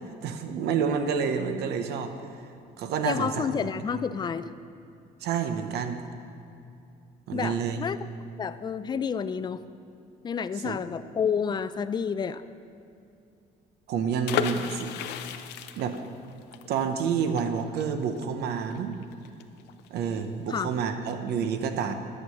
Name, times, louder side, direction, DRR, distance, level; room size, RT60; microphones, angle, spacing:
voice 1, 0.2-2.1 2.8-3.5 3.9-4.0 5.2-6.0 7.3-7.8 10.6-10.8 13.9-14.9 15.8-16.0 16.7-19.0 19.9-21.9, right 6 dB, 75° right, 8 dB, 0.8 m, -28 dB
voice 2, 3.0-4.5 7.3-8.0 8.4-9.6 10.2-12.4 20.5-20.7, left 6 dB, 25° left, 13 dB, 0.4 m, -29 dB
sound 1, 14.2-19.9 20.2-20.3 20.5-20.8, left 9 dB, 85° left, 0.6 m, -34 dB
11.0 x 7.4 x 6.4 m, 2.6 s
cardioid pair, 110°, 17 cm